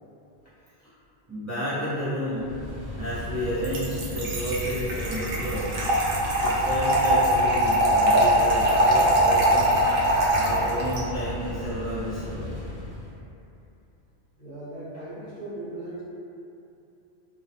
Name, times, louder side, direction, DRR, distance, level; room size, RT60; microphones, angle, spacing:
voice 1, 1.3-2.5 3.0-5.7 6.4-9.8 10.3-12.5, equal, 20° right, -13 dB, 0.5 m, -31 dB
sound 1, 2.3-13.2, left 2 dB, 85° right, 1.1 m, -35 dB
Trickle dribble / Fill (with liquid), 3.6-11.0, right 1 dB, 60° right, 0.6 m, -22 dB
voice 2, 14.4-16.0, right 1 dB, 35° left, -16 dB, 0.8 m, -38 dB
2.6 x 2.0 x 2.7 m, 2.7 s
omnidirectional pair, 1.2 m